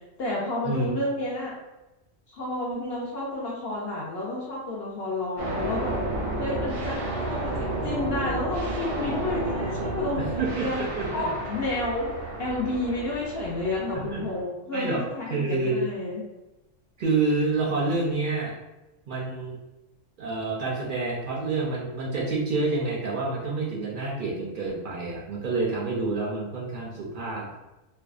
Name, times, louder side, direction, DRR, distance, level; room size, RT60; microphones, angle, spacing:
voice 1, 0.2-1.5 2.3-6.0 6.4-7.0 7.3-10.8 11.1-16.2, left 2 dB, 65° left, -4 dB, 0.7 m, -30 dB
sound 1, 5.4-14.4, right 2 dB, 90° right, 1.0 m, -31 dB
voice 2, 10.2-11.3 13.9-14.2 14.7-15.0 15.3-15.9 17.0-18.5 19.1-19.6 20.2-27.5, right 3 dB, 65° right, -4 dB, 0.5 m, -28 dB
2.6 x 2.1 x 2.3 m, 1.0 s
omnidirectional pair, 1.3 m